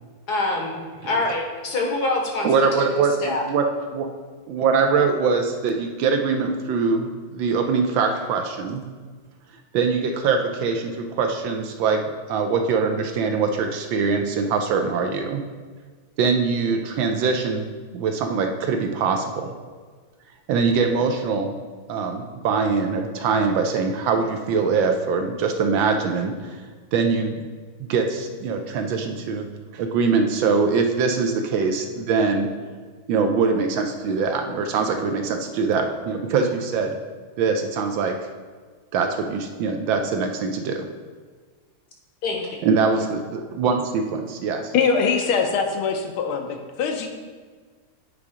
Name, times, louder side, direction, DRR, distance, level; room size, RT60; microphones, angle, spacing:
voice 1, 0.3-3.4 42.2-42.5, left 2 dB, 60° left, 1 dB, 1.3 m, -26 dB
voice 2, 2.4-3.7 3.9-4.1 4.5-8.8 9.7-12.0 12.3-15.4 16.2-17.7 17.9-19.5 20.5-21.5 21.9-26.6 26.9-27.4 27.8-29.5 29.7-32.5 33.1-37.0 37.4-38.2 38.9-40.9 42.6-44.7, right 5 dB, 75° right, 5 dB, 1.3 m, -23 dB
voice 3, 44.7-47.1, left 5 dB, 80° left, 4 dB, 1.6 m, -22 dB
8.5 x 3.6 x 4.9 m, 1.5 s
omnidirectional pair, 2.3 m